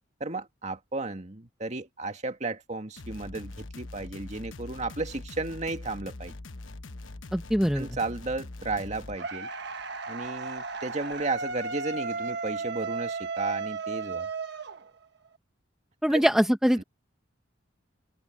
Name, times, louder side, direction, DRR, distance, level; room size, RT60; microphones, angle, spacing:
voice 1, 0.2-6.3 7.7-9.5 10.1-14.3 16.1-16.2, right 3 dB, 35° right, 1.9 m, -34 dB
sound 1, 3.0-9.2, left 2 dB, 75° left, 1.1 m, -42 dB
voice 2, 7.3-7.9 16.0-16.8, equal, ahead, 0.8 m, -23 dB
sound 2, 9.2-15.3, right 4 dB, 60° right, 1.4 m, -34 dB
head